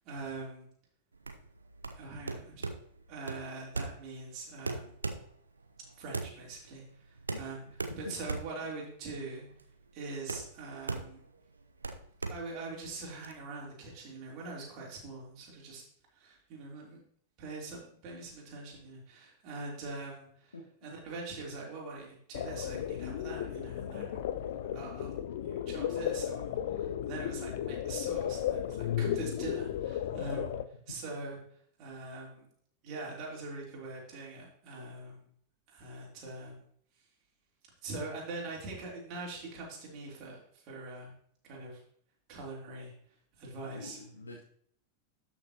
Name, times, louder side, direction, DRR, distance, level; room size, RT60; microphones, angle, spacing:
voice 1, 0.0-0.7 2.0-2.7 3.1-4.9 6.0-7.6 8.0-9.5 9.9-11.2 12.3-15.8 16.1-17.0 17.4-20.5 20.8-24.5 24.7-30.6 30.9-31.4 31.8-32.5 32.8-35.2 35.7-36.6 37.8-41.1 41.4-41.8 42.3-42.9 43.4-44.0, right 3 dB, 40° right, -3 dB, 3.4 m, -43 dB
sound 1, 1.1-13.3, right 3 dB, 75° right, 0.7 m, -40 dB
voice 2, 7.9-8.4 20.5-20.9 43.6-44.4, left 3 dB, 75° left, -2 dB, 1.2 m, -46 dB
sound 2, 22.3-30.6, left 10 dB, 55° left, 0.5 m, -34 dB
12.5 x 6.1 x 2.9 m, 0.63 s
figure-of-eight pair, 90°, 0 cm